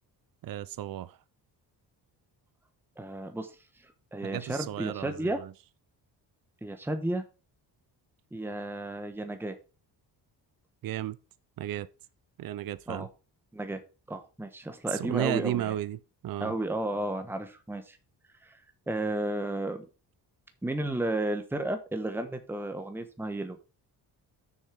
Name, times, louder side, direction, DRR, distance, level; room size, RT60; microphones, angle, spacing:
voice 1, 0.4-1.2 4.2-5.5 10.8-11.2 11.6-11.9 12.4-13.1 14.9-16.5, right 13 dB, 55° right, 0.6 m, -34 dB
voice 2, 3.0-3.5 3.8-5.4 6.6-7.2 8.3-9.6 12.9-13.1 13.5-13.8 14.1-15.7 16.4-18.0 18.4-18.6 18.9-19.8 20.6-23.6, right 1 dB, 5° right, 1.1 m, -33 dB
6.9 x 6.4 x 4.8 m
cardioid pair, 115°, 40 cm